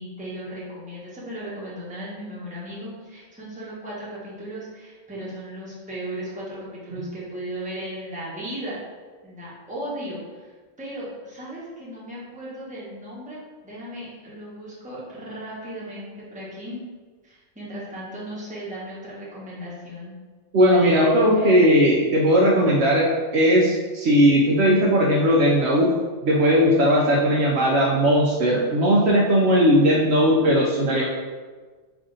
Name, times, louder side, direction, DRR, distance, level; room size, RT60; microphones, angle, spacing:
voice 1, 0.0-8.8 9.2-10.5 10.8-16.8 17.2-20.1 20.8-21.1 21.4-21.6, equal, 5° right, -7 dB, 0.8 m, -36 dB
voice 2, 20.5-23.1 23.3-25.9 26.2-31.0, equal, 65° right, -3 dB, 0.8 m, -18 dB
3.4 x 2.5 x 3.8 m, 1.4 s
omnidirectional pair, 1.3 m